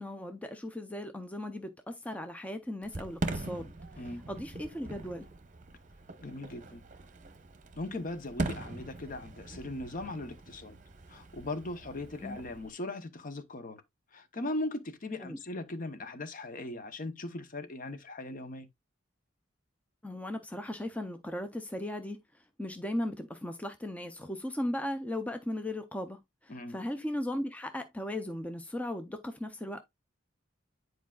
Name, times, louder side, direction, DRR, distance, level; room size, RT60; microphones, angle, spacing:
voice 1, 0.0-3.7 4.3-5.3 12.2-12.4 15.2-15.4 20.0-22.2 22.6-29.8, left 1 dB, 5° left, 0.5 m, -37 dB
Fireworks, 2.8-12.7, right 2 dB, 40° right, 0.8 m, -41 dB
voice 2, 6.2-6.8 7.8-10.8 11.1-13.8 14.1-18.7 26.5-26.8, left 2 dB, 45° left, 0.8 m, -39 dB
9.9 x 4.6 x 2.3 m
head